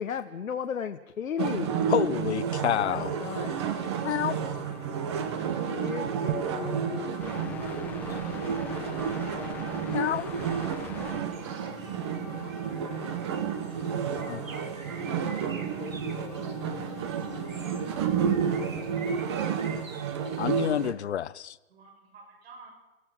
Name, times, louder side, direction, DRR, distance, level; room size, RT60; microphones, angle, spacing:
voice 1, 0.0-1.8 2.7-3.7 5.7-7.8 8.1-8.2 9.8-10.2 10.9-11.3 14.0-14.5 15.3-16.6 17.1-17.2 17.6-19.0 19.7-19.8 20.2-20.7, left 7 dB, 85° left, 1.2 m, -38 dB
sound 1, 1.4-20.9, right 7 dB, 20° right, 1.0 m, -31 dB
voice 2, 1.9-3.1 4.0-4.4 9.9-10.3 14.3-14.4 20.4-21.6, left 10 dB, 55° left, 0.8 m, -28 dB
sound 2, 2.7-19.0, left 6 dB, 5° left, 0.8 m, -43 dB
Bird, 11.3-20.9, right 4 dB, 85° right, 3.7 m, -49 dB
voice 3, 12.6-13.3 21.7-22.7, right 3 dB, 50° right, 7.1 m, -51 dB
29.0 x 15.0 x 6.0 m
hypercardioid pair, 160°, 39 cm